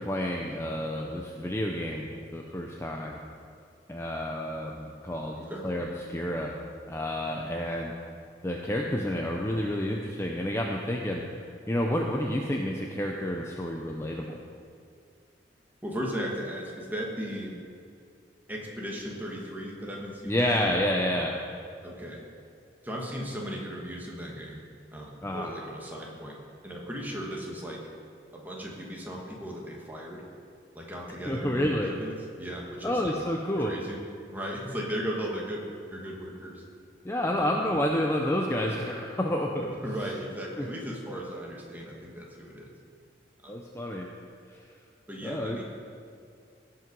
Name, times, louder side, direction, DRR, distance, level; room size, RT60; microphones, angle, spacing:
voice 1, 0.0-3.2 3.9-5.4 5.6-6.5 6.9-7.9 8.4-11.2 11.7-14.4 20.3-21.3 25.2-25.5 31.3-31.9 32.8-33.7 37.0-39.7 40.6-40.7 43.5-44.1 45.2-45.6, left 1 dB, 15° left, 0 dB, 0.6 m, -29 dB
voice 2, 15.8-17.5 18.5-20.7 21.8-22.2 22.8-24.6 24.9-27.9 28.3-30.2 30.7-33.1 33.6-34.0 34.3-36.6 37.3-37.5 39.6-42.7 43.4-43.5 45.1-45.6, equal, 10° right, -2 dB, 1.6 m, -37 dB
17.0 x 5.7 x 5.4 m, 2.3 s
head